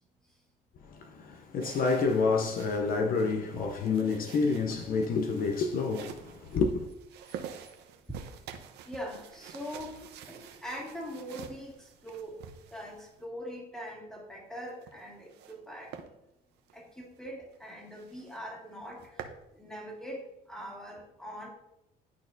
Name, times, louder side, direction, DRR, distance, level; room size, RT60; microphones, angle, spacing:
voice 1, 0.8-6.9, left 4 dB, 60° left, 0.6 m, -28 dB
sound 1, 1.6-13.3 14.6-15.6 15.9-16.1 16.6-16.8 17.2-17.3 17.5-17.6 17.9-18.4 18.8-19.4, right 8 dB, 80° right, 0.7 m, -48 dB
voice 2, 8.9-12.4 12.7-16.0 16.7-21.5, equal, 5° left, 1.8 m, -42 dB
11.0 x 4.2 x 2.6 m
cardioid pair, 110°, 17 cm